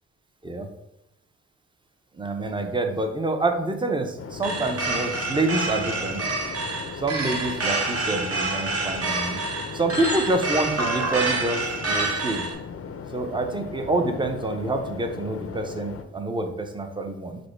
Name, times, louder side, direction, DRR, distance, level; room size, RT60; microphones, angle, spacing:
voice 1, 2.2-6.2 7.0-9.4 9.7-12.5 13.1-17.4, right 2 dB, 15° right, 5 dB, 0.6 m, -27 dB
sound 1, 4.2-16.0, left 6 dB, 50° left, 0.5 m, -37 dB
sound 2, 4.4-12.5, right 3 dB, 50° right, 1.1 m, -28 dB
5.0 x 2.1 x 4.4 m, 0.84 s
cardioid pair, 80°, 30 cm